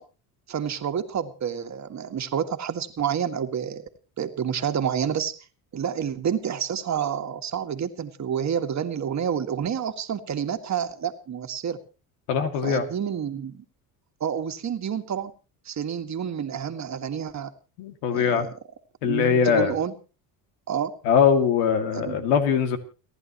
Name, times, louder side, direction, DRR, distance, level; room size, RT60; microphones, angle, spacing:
voice 1, 0.5-3.8 4.2-5.3 5.7-11.8 12.6-13.6 14.2-15.3 15.6-17.5 18.1-18.5 19.0-19.9 20.7-20.9 21.9-22.3, right 8 dB, 40° right, 7 dB, 1.8 m, -29 dB
voice 2, 12.3-12.9 17.8-18.5 19.0-19.7 21.1-22.8, left 7 dB, 85° left, 7 dB, 2.4 m, -21 dB
30.0 x 11.0 x 3.0 m, 0.34 s
supercardioid pair, 90°, 43 cm